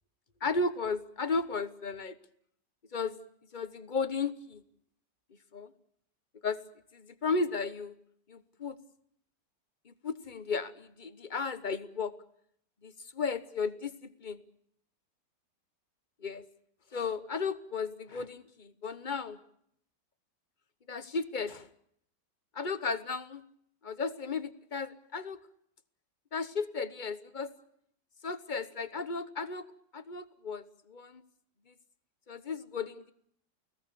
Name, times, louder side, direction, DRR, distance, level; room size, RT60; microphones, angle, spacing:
voice 1, 0.4-2.1 2.9-3.2 3.5-4.6 5.5-5.7 6.4-6.6 6.9-8.0 8.3-8.8 9.8-12.1 12.8-14.4 16.2-16.4 16.9-19.4 20.9-21.7 22.5-23.4 23.8-25.4 26.3-27.5 28.2-29.6 29.9-31.2 31.7-31.8 32.3-33.1, left 4 dB, 30° left, 12 dB, 1.0 m, -34 dB
29.5 x 18.5 x 6.9 m, 0.69 s
omnidirectional pair, 1.9 m